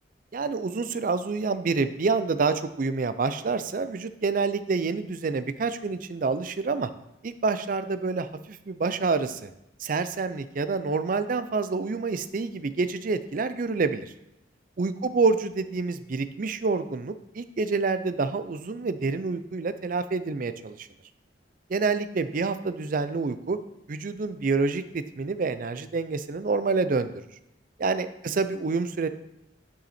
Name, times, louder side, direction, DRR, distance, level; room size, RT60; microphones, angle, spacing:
voice 1, 0.3-6.9 7.2-9.5 9.8-14.1 14.8-20.9 21.7-23.6 23.9-27.1 27.8-29.1, right 4 dB, 50° right, 12 dB, 0.5 m, -27 dB
9.2 x 5.6 x 4.3 m, 0.87 s
head